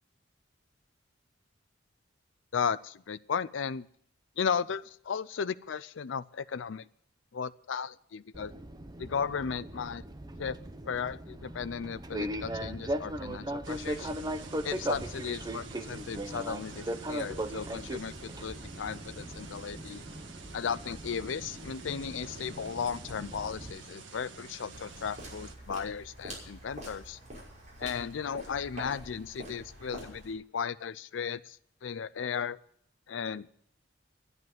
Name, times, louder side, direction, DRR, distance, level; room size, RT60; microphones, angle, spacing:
voice 1, 2.5-3.9 4.4-6.9 7.3-8.5 9.0-10.0 10.4-10.6 10.9-14.1 14.6-20.0 20.5-27.2 27.8-32.6 33.1-33.5, left 6 dB, 80° left, 16 dB, 0.5 m, -35 dB
Fixed-wing aircraft airplane, 8.3-23.7, right 1 dB, 20° right, 0.8 m, -39 dB
sound 1, 13.6-25.5, right 3 dB, 80° right, 1.7 m, -48 dB
sound 2, 24.7-30.3, right 1 dB, 40° right, 5.8 m, -46 dB
11.0 x 11.0 x 7.9 m, 0.65 s
head